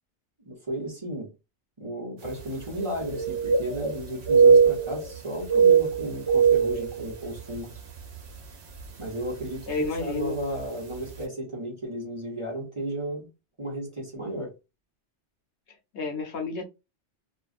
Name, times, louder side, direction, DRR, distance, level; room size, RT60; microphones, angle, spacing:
voice 1, 0.4-1.3 1.8-7.7 9.0-13.3 13.6-14.5, right 1 dB, 25° right, 1.0 m, -34 dB
sound 1, 2.3-2.4 2.7-4.0 4.2-5.2 5.4-7.6 8.0-8.2 8.8-9.1 10.1-10.2 10.6-10.7, right 6 dB, 70° right, 1.0 m, -21 dB
voice 2, 9.7-10.4 15.9-16.6, left 4 dB, 75° left, 1.0 m, -30 dB
2.6 x 2.4 x 2.4 m
omnidirectional pair, 1.2 m